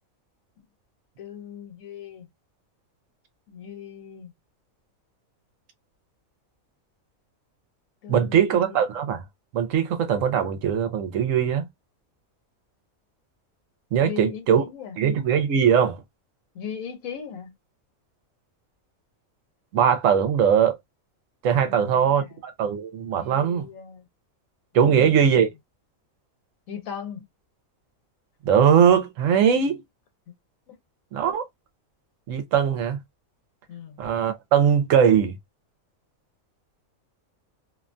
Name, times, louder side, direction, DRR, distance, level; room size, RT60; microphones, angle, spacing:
voice 1, 1.2-2.3 3.5-4.3 8.0-8.7 14.0-14.9 16.5-17.5 21.6-22.2 23.2-24.0 24.8-25.4 26.7-27.2 30.7-30.8 33.7-34.0, left 7 dB, 80° left, 1.2 m, -38 dB
voice 2, 8.1-9.2 9.5-11.7 13.9-14.6 15.0-16.0 19.7-20.8 21.4-23.7 24.7-25.5 28.4-29.8 31.1-31.4 32.3-33.0 34.0-35.4, right 8 dB, 75° right, 1.0 m, -20 dB
2.7 x 2.1 x 2.5 m
omnidirectional pair, 1.4 m